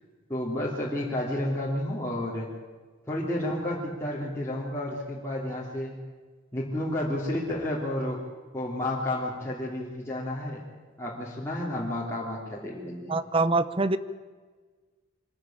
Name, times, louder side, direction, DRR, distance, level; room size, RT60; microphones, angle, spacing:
voice 1, 0.3-2.5 3.1-5.9 6.5-8.2 8.5-10.6 11.0-13.2, left 1 dB, 15° left, -5 dB, 3.1 m, -31 dB
voice 2, 13.1-14.0, right 3 dB, 25° right, 15 dB, 0.8 m, -24 dB
24.5 x 14.0 x 8.7 m, 1.4 s
head